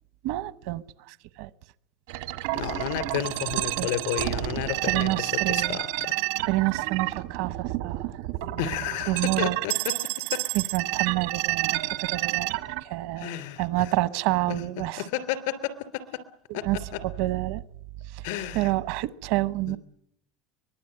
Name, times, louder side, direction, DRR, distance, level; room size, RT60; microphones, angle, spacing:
voice 1, 0.2-1.5 3.8-3.9 4.9-5.8 6.5-8.2 9.1-9.6 10.5-13.3 13.6-15.1 16.5-16.8 17.0-17.6 18.1-18.3 18.5-19.8, right 17 dB, 70° right, 15 dB, 1.0 m, -28 dB
sound 1, 2.1-12.8, right 18 dB, 85° right, 1.6 m, -30 dB
voice 2, 2.5-6.1 8.6-9.7 10.3-10.4 13.2-13.9 15.0-16.0 16.5-16.6 18.2-18.7 19.7-19.8, left 12 dB, 80° left, 11 dB, 3.0 m, -31 dB
24.0 x 20.0 x 8.8 m, 0.73 s
cardioid pair, 170°, 0 cm